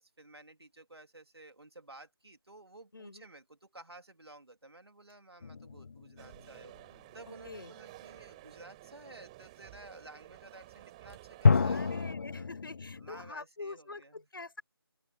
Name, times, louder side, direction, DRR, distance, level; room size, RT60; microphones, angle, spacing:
voice 1, 0.0-12.5 13.0-14.2, right 2 dB, 80° right, 3.3 m, -54 dB
voice 2, 2.9-3.3 7.3-7.7 11.7-14.6, left 3 dB, 60° left, 5.9 m, -45 dB
sound 1, 5.4-6.7 11.4-13.3, left 5 dB, 40° left, 0.5 m, -29 dB
sound 2, 6.2-12.1, right 18 dB, 15° right, 4.9 m, -52 dB
open air
figure-of-eight pair, 160°, 13 cm